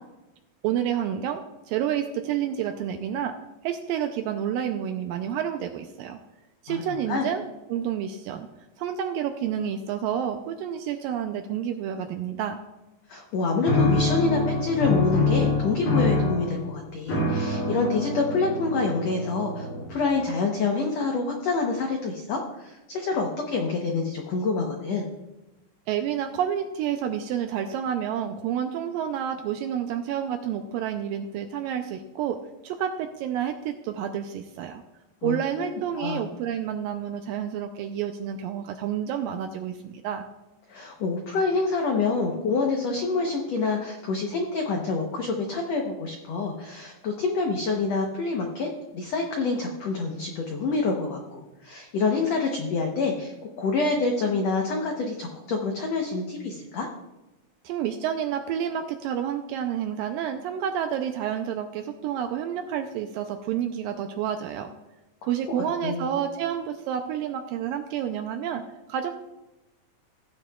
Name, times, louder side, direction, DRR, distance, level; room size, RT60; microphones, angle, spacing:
voice 1, 0.6-3.4 3.6-6.2 6.6-7.4 7.7-8.5 8.8-12.6 25.9-34.8 35.2-40.3 57.6-64.7 65.3-68.6 68.9-69.2, right 9 dB, 80° right, 7 dB, 2.1 m, -29 dB
voice 2, 6.7-7.3 13.1-25.0 35.2-35.3 36.0-36.2 40.7-56.9 65.8-66.1, left 3 dB, 85° left, 1 dB, 1.4 m, -27 dB
sound 1, 13.6-20.1, left 3 dB, 40° left, 2.4 m, -26 dB
16.0 x 9.1 x 2.3 m, 1.0 s
omnidirectional pair, 4.5 m